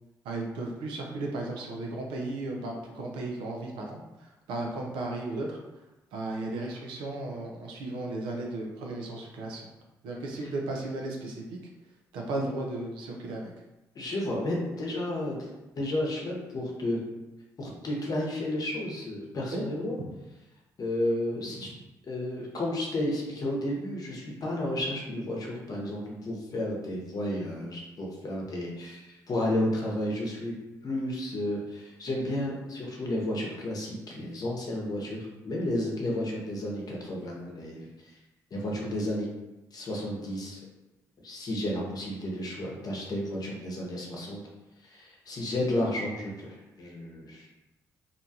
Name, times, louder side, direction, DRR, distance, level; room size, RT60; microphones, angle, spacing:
voice 1, 0.3-4.0 4.5-5.6 6.1-9.7 10.0-11.4 12.1-13.5 19.5-19.6, right 2 dB, 80° right, 0 dB, 0.5 m, -35 dB
voice 2, 13.9-15.5 15.8-17.0 17.6-20.0 20.8-21.7 22.1-30.5 30.8-37.9 38.5-39.3 39.7-40.6 41.2-44.4 44.9-47.5, left 1 dB, 50° left, -2 dB, 0.8 m, -32 dB
2.6 x 2.2 x 2.7 m, 1.0 s
hypercardioid pair, 50°, 8 cm